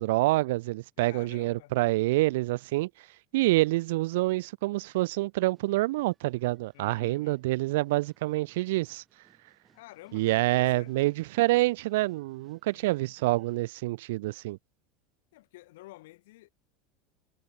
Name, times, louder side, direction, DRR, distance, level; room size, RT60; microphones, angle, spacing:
voice 1, 0.0-2.9 3.3-9.0 10.1-14.6, right 19 dB, 80° right, 0.3 m, -27 dB
voice 2, 1.0-1.7 6.7-7.4 9.7-11.2 12.7-13.1 15.3-16.5, left 19 dB, 80° left, 1.9 m, -50 dB
sound 1, 4.7-13.6, right 6 dB, 20° right, 5.5 m, -69 dB
supercardioid pair, 155°, 0 cm